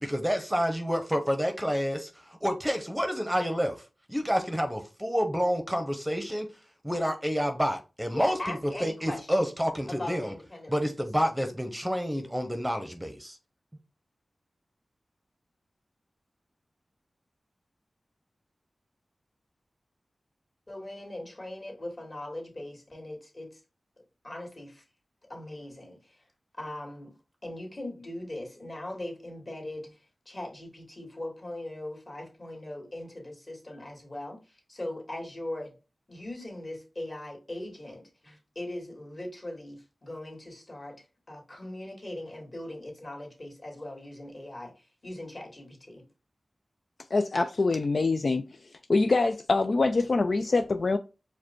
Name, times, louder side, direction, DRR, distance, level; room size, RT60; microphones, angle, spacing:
voice 1, 0.0-3.8 4.1-6.5 6.8-10.3 10.7-13.4, equal, 5° right, 0.8 m, -29 dB
voice 2, 8.1-9.3 9.9-10.8 11.2-11.3 20.7-23.6 24.2-24.8 25.3-26.2 26.5-27.2 27.4-30.0 30.3-35.7 36.1-46.0, left 1 dB, 40° left, 2.0 m, -40 dB
voice 3, 47.1-48.4 48.9-51.0, left 3 dB, 60° left, 0.3 m, -24 dB
4.9 x 2.2 x 4.4 m
cardioid pair, 55°, 0 cm